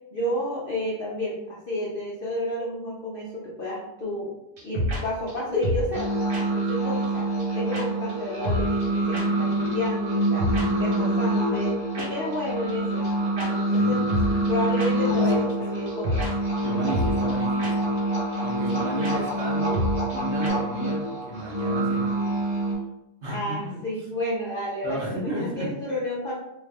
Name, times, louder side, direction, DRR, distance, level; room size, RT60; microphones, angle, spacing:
voice 1, 0.1-4.3 4.6-6.1 6.5-7.3 7.5-14.0 14.5-16.2 18.6-19.3 23.2-26.4, left 1 dB, 55° left, -5 dB, 0.6 m, -31 dB
sound 1, 4.6-5.0 5.3-5.4 5.6-6.0 6.3-6.4 6.7-6.8 7.0-7.1 7.4-7.5 7.7-7.8 8.1-8.2 8.4-8.9 9.1-9.2 9.5-9.6 9.9-10.0 10.2-10.6 10.9-11.0 11.9-12.1 12.3-12.4 12.7-12.8 13.0-13.1 13.4-13.5 13.7-13.8 14.1-14.5 14.8-14.9 15.2-15.3 15.5-15.6 15.9-16.3 16.6-16.7 16.9-17.3 17.6-17.7 18.0-18.1 18.3-18.4 18.7-18.8 19.0-19.1 19.4-19.5 19.7-20.2 20.4-20.5, equal, 80° right, 1.6 m, -28 dB
sound 2, 5.9-22.7, right 1 dB, 15° right, 1.4 m, -26 dB
voice 2, 13.7-14.4 15.3-15.4 16.6-17.9 18.4-19.9 20.1-22.5 23.2-23.8 24.8-25.7, right 1 dB, 50° right, -5 dB, 1.1 m, -34 dB
3.0 x 2.5 x 3.5 m, 0.86 s
omnidirectional pair, 1.7 m